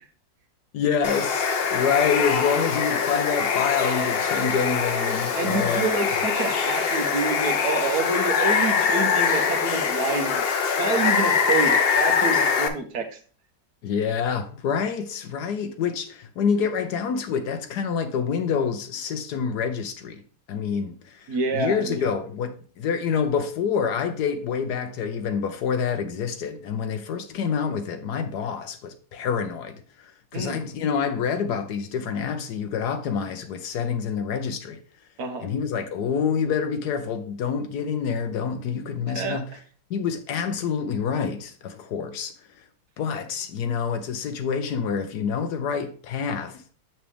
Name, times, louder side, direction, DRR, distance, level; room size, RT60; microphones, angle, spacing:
voice 1, 0.7-6.1 13.8-20.2 20.5-21.3 21.5-34.8 35.4-39.5 39.9-42.3 43.0-46.7, left 6 dB, 80° left, 1.3 m, -27 dB
Water, 1.0-12.7, left 6 dB, 50° left, 0.7 m, -23 dB
voice 2, 5.3-10.4 10.8-13.2 21.3-22.0 30.3-30.6 35.2-35.5 39.1-39.4, right 4 dB, 70° right, 1.4 m, -28 dB
7.3 x 6.0 x 3.2 m
omnidirectional pair, 1.7 m